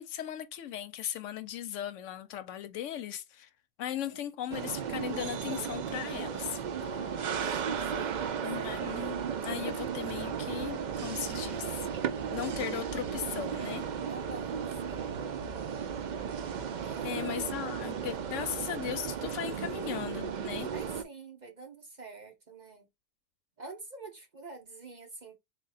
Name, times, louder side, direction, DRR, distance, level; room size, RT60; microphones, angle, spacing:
voice 1, 0.0-3.5 3.8-6.6 8.4-9.2 9.4-11.9 12.2-13.8 16.9-20.7, left 11 dB, 75° left, 0.9 m, -37 dB
voice 2, 4.0-4.3 6.6-7.6 7.9-8.4 14.1-15.2 16.8-17.5 20.7-22.9 23.6-25.4, right 3 dB, 40° right, 0.8 m, -47 dB
sound 1, 4.5-21.0, right 7 dB, 65° right, 0.4 m, -35 dB
3.6 x 2.4 x 4.0 m
omnidirectional pair, 1.3 m